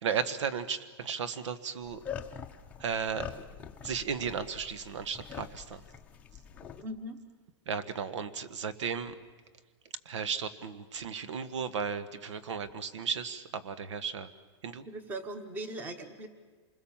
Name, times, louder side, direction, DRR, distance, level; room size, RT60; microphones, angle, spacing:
voice 1, 0.0-2.0 2.8-3.3 3.8-5.8 7.6-9.1 10.0-14.3 14.6-14.8, right 6 dB, 90° right, 13 dB, 1.6 m, -35 dB
sound 1, 1.8-6.8, left 8 dB, 10° left, 0.7 m, -44 dB
voice 2, 6.8-7.2 14.8-16.3, right 1 dB, 10° right, 11 dB, 1.1 m, -39 dB
27.5 x 21.0 x 7.3 m, 1.5 s
supercardioid pair, 180°, 15 cm